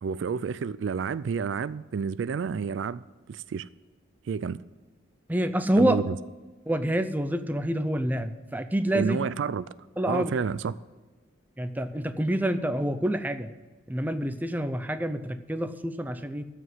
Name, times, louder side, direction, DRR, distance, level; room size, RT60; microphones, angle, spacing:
voice 1, 0.0-3.0 3.3-3.7 4.3-4.6 5.8-6.2 8.9-9.7 10.1-10.7, right 6 dB, 70° right, 0.3 m, -29 dB
voice 2, 5.3-6.0 6.7-9.2 10.0-10.3 11.6-13.5 13.9-16.4, right 1 dB, 10° right, 0.5 m, -27 dB
14.0 x 4.9 x 7.9 m
head